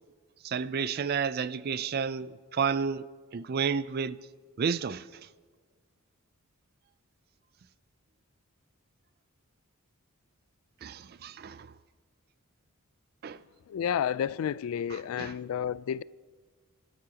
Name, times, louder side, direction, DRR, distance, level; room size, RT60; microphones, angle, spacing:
voice 1, 0.4-3.1 3.3-4.3 4.6-5.3 10.8-11.7 13.2-13.4 14.9-15.4, right 6 dB, 45° right, 0.4 m, -31 dB
voice 2, 13.7-16.0, left 8 dB, 75° left, 0.3 m, -31 dB
29.0 x 12.5 x 2.9 m
head